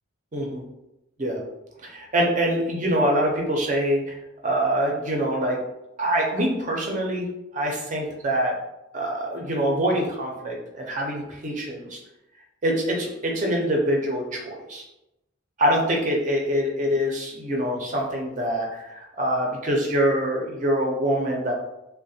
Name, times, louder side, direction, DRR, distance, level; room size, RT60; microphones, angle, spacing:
voice 1, 0.3-0.6 1.2-1.4 1.8-4.2 4.4-5.6 6.0-7.3 7.5-8.5 8.9-12.0 12.6-14.8 15.6-21.5, equal, 35° right, 0 dB, 0.5 m, -24 dB
3.2 x 2.1 x 2.6 m, 0.91 s
head